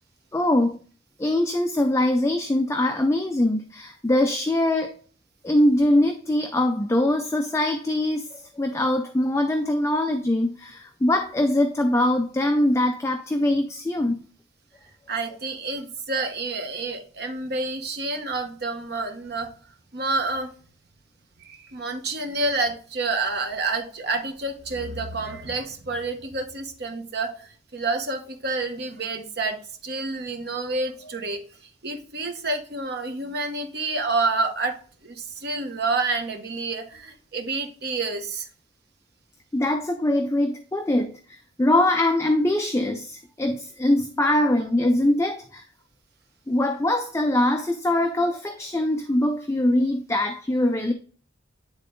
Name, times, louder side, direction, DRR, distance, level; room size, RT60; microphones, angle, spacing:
voice 1, 0.3-0.8 1.2-4.9 5.4-14.2 39.5-45.6 46.5-50.9, left 1 dB, 15° left, 5 dB, 0.4 m, -22 dB
voice 2, 15.1-19.5 19.9-20.5 21.4-38.5, right 3 dB, 55° right, 5 dB, 1.0 m, -29 dB
9.7 x 3.7 x 3.7 m, 0.43 s
head